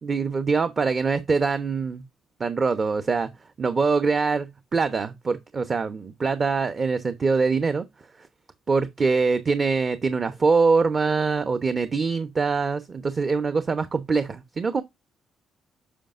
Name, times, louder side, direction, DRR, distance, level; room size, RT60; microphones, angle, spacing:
voice 1, 0.0-2.0 2.4-3.3 3.6-7.8 8.7-14.8, right 4 dB, 35° right, 0.9 m, -23 dB
9.8 x 5.7 x 2.5 m
cardioid pair, 90°, 0 cm